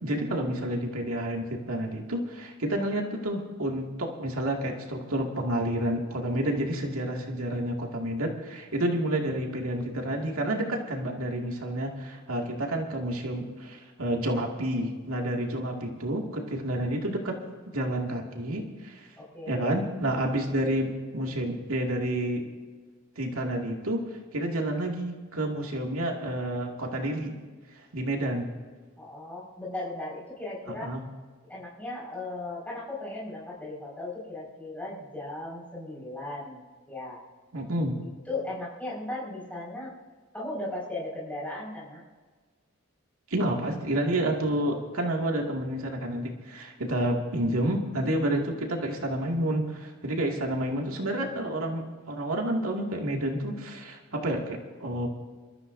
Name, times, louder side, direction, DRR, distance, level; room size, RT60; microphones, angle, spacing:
voice 1, 0.0-17.4 17.7-19.1 19.5-22.5 23.2-24.0 24.3-27.4 27.9-28.5 30.7-31.0 37.5-38.0 43.3-55.1, right 1 dB, 90° right, 0 dB, 2.3 m, -29 dB
voice 2, 19.2-19.7 29.0-31.0 31.5-37.2 38.3-39.9 40.3-42.0, left 2 dB, 5° left, -6 dB, 5.4 m, -37 dB
27.5 x 13.5 x 2.7 m, 1.5 s
head